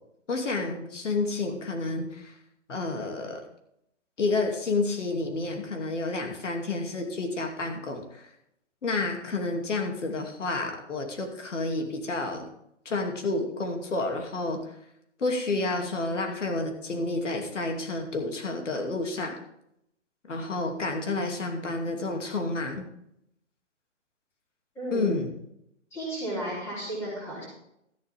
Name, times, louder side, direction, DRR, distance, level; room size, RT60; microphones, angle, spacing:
voice 1, 0.3-2.3 2.7-3.4 4.2-8.3 8.8-12.5 12.8-14.7 15.2-19.4 20.3-22.8 24.9-25.3, left 3 dB, 80° left, 3 dB, 2.7 m, -30 dB
voice 2, 24.8-25.1 25.9-27.4, right 1 dB, 5° left, -7 dB, 3.6 m, -33 dB
13.5 x 11.0 x 3.5 m, 0.76 s
hypercardioid pair, 175°, 36 cm